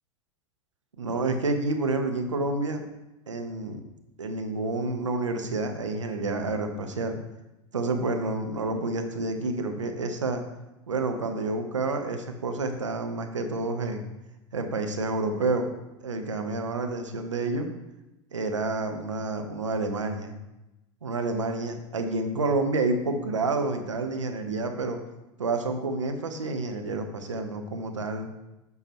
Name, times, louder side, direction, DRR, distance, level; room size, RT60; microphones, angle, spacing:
voice 1, 1.0-2.8 3.3-3.8 4.2-7.2 7.7-10.4 10.9-14.0 14.5-15.7 16.0-17.7 18.3-20.3 21.0-25.0 25.4-28.3, right 3 dB, 85° right, 6 dB, 0.9 m, -29 dB
9.2 x 5.7 x 3.0 m, 0.98 s
figure-of-eight pair, 80°, 15 cm